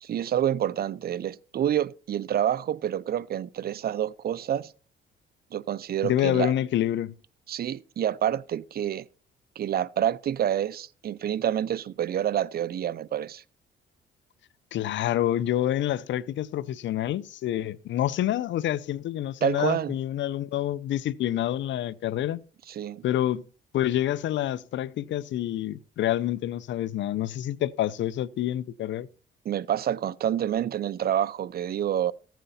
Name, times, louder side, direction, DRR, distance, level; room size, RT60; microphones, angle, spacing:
voice 1, 0.0-4.7 5.5-6.5 7.5-9.1 9.6-13.4 19.4-19.9 22.7-23.0 29.4-32.1, right 10 dB, 50° right, 0.5 m, -28 dB
voice 2, 6.0-7.1 14.7-22.4 23.0-23.4 23.7-29.1, left 12 dB, 70° left, 0.6 m, -27 dB
14.5 x 9.2 x 4.2 m
cardioid pair, 90°, 20 cm